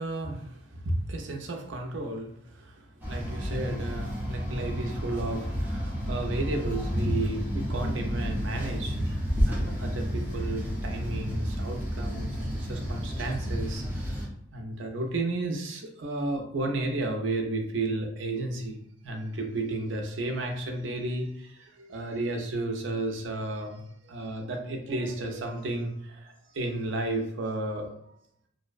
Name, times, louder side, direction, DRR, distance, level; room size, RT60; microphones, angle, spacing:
voice 1, 0.0-9.0 9.4-14.3 14.5-18.8 19.0-27.9, right 2 dB, 80° right, 3 dB, 0.5 m, -33 dB
sound 1, 3.0-14.3, equal, 10° right, 0.6 m, -31 dB
2.6 x 2.0 x 2.4 m, 0.74 s
head